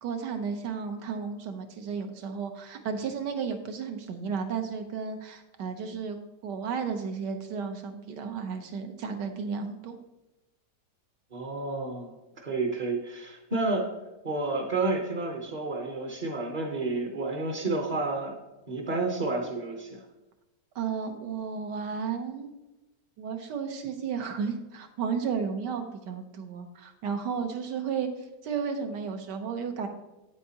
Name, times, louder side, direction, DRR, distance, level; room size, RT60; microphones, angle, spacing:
voice 1, 0.0-6.2 6.4-10.0 20.7-22.5 23.2-28.1 28.4-29.9, right 6 dB, 85° right, 6 dB, 1.5 m, -33 dB
voice 2, 11.3-12.1 12.4-13.9 14.2-18.3 18.7-20.0, right 3 dB, 40° right, 1 dB, 0.6 m, -30 dB
8.6 x 8.2 x 2.8 m, 1.0 s
omnidirectional pair, 1.8 m